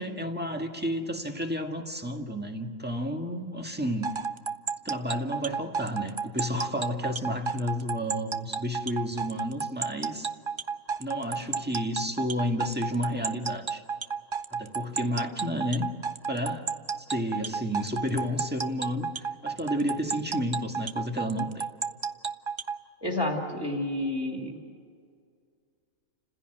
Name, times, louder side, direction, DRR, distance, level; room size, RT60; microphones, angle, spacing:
voice 1, 0.0-4.2 4.9-10.3 11.0-13.8 14.5-15.9 16.3-16.7 17.1-21.6, equal, 5° right, 3 dB, 1.6 m, -31 dB
sound 1, 4.0-22.8, right 6 dB, 50° right, 0.3 m, -31 dB
voice 2, 23.0-24.6, left 1 dB, 15° left, 0 dB, 2.6 m, -30 dB
30.0 x 15.5 x 7.8 m, 2.2 s
omnidirectional pair, 1.5 m